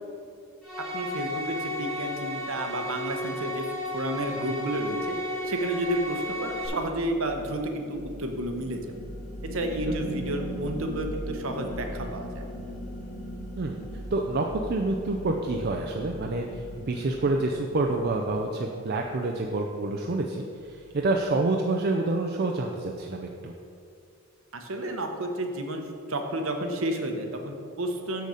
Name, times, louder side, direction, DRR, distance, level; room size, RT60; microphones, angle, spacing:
sound 1, 0.6-6.7, left 1 dB, ahead, 1.5 m, -33 dB
voice 1, 0.9-3.6 3.9-5.2 5.4-8.8 9.5-12.4 24.5-25.8 26.1-28.3, right 1 dB, 65° right, 4 dB, 0.9 m, -31 dB
sound 2, 5.0-19.4, right 1 dB, 35° left, 1.7 m, -40 dB
voice 2, 14.1-23.5, right 2 dB, 45° right, 1 dB, 0.4 m, -28 dB
6.8 x 6.5 x 4.9 m, 2.4 s
head